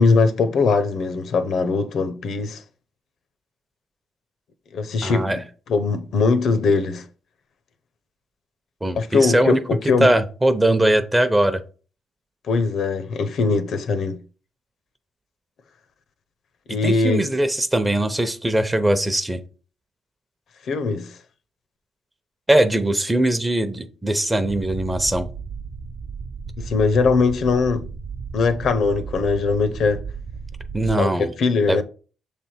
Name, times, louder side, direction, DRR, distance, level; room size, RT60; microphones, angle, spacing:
voice 1, 0.0-2.6 4.7-5.3 5.7-7.0 8.9-10.1 12.5-14.2 16.7-17.2 20.7-21.2 26.6-27.9 28.3-30.0 31.0-31.8, left 4 dB, 65° left, 0.7 m, -21 dB
voice 2, 5.0-5.4 8.8-9.6 10.0-11.6 16.7-19.4 22.5-25.3 30.7-31.3 31.7-31.8, right 1 dB, 15° right, 0.7 m, -20 dB
sound 1, 24.4-31.0, right 5 dB, 50° right, 0.7 m, -34 dB
6.8 x 3.4 x 4.4 m
cardioid pair, 90°, 0 cm